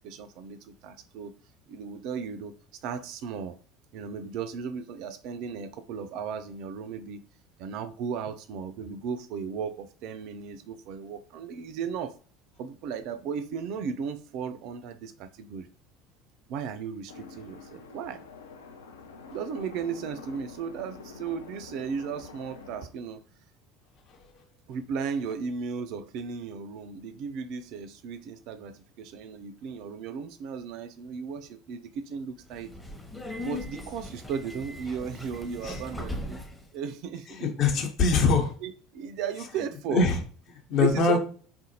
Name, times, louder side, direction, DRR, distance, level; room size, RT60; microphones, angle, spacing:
voice 1, 0.0-1.3 1.7-2.5 2.8-3.6 3.9-7.2 7.6-12.2 12.6-15.7 16.5-18.2 19.3-23.2 24.7-32.7 33.4-36.4 36.7-37.3 38.6-40.1 40.8-41.2, right 6 dB, 50° right, 0.3 m, -35 dB
sound 1, 17.1-22.9, left 4 dB, 75° left, 0.4 m, -46 dB
Subway metro underground, 32.4-36.7, left 1 dB, 5° left, 0.6 m, -39 dB
voice 2, 37.3-38.5 39.9-40.2 40.7-41.2, left 4 dB, 45° left, 0.8 m, -23 dB
3.6 x 2.5 x 2.8 m
figure-of-eight pair, 65°, 0 cm